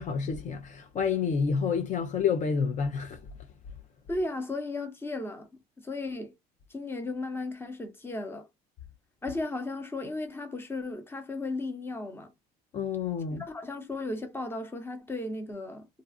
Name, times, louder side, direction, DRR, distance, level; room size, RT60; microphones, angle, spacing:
voice 1, 0.0-3.2 12.7-13.4, left 6 dB, 45° left, 0.5 m, -29 dB
voice 2, 4.1-5.5 5.8-6.3 6.7-8.5 9.2-12.3 13.4-15.9, left 2 dB, 10° left, 0.8 m, -35 dB
2.5 x 2.3 x 2.4 m
supercardioid pair, 100°, 18 cm